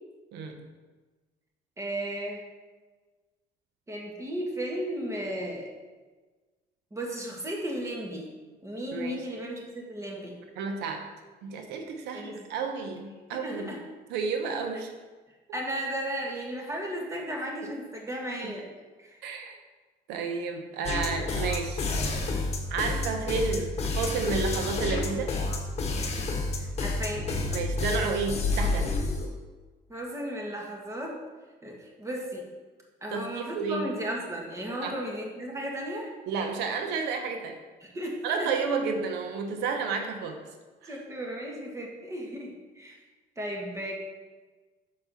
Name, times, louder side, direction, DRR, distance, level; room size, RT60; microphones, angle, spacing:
voice 1, 0.3-0.7 8.9-9.2 10.6-11.0 11.4-13.8 14.1-14.9 17.6-17.7 18.4-18.5 19.2-19.6 20.1-21.9 22.7-25.3 27.5-28.9 33.1-33.9 34.8-34.9 36.3-37.6 38.2-40.4 40.8-40.9, right 5 dB, 90° right, 5 dB, 0.8 m, -31 dB
voice 2, 1.8-2.4 3.9-5.7 6.9-8.3 8.6-10.4 12.1-12.4 13.3-13.8 15.5-18.7 19.0-19.2 26.5-27.3 29.9-31.2 31.6-32.4 33.0-36.1 37.8-38.5 40.9-43.0 43.4-44.0, equal, 15° right, -1 dB, 1.6 m, -35 dB
sound 1, 20.8-29.3, left 3 dB, 40° left, 1.2 m, -29 dB
6.6 x 4.6 x 5.5 m, 1.3 s
cardioid pair, 110°, 17 cm